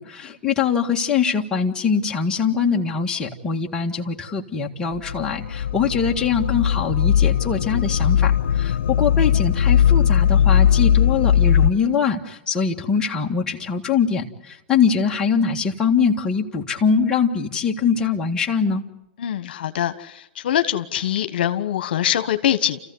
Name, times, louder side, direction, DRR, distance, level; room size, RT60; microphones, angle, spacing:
voice 1, 0.0-18.8, left 6 dB, 10° left, -1 dB, 1.8 m, -23 dB
sound 1, 4.9-11.7, left 9 dB, 75° left, 0.9 m, -18 dB
voice 2, 19.2-22.8, left 11 dB, 60° left, 9 dB, 1.4 m, -23 dB
29.5 x 15.0 x 9.6 m, 0.92 s
hypercardioid pair, 160°, 6 cm